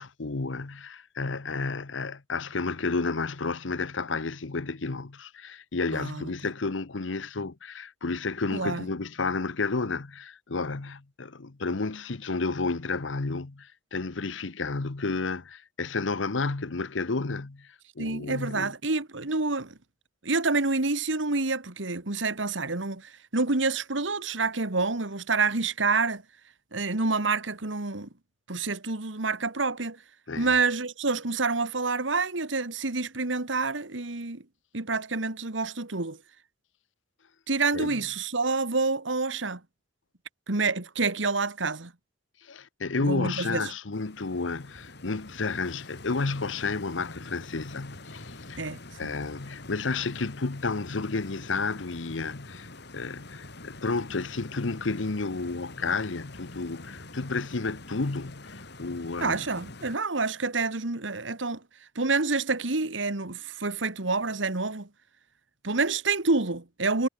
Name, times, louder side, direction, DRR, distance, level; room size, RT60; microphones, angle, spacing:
voice 1, 0.0-17.7 18.0-18.7 30.3-30.6 37.7-37.9 42.4-48.6 49.0-52.7 52.9-59.4, left 3 dB, 80° left, 1.0 m, -31 dB
voice 2, 5.9-6.3 8.5-8.9 18.0-19.8 20.2-26.2 26.7-28.1 28.5-30.0 30.4-34.4 34.7-36.2 37.5-39.6 40.5-41.9 43.0-43.7 48.6-49.1 59.2-61.6 62.0-64.9 65.6-67.1, right 3 dB, 80° right, 2.0 m, -28 dB
Stream, 43.9-60.0, left 2 dB, 65° left, 4.5 m, -45 dB
head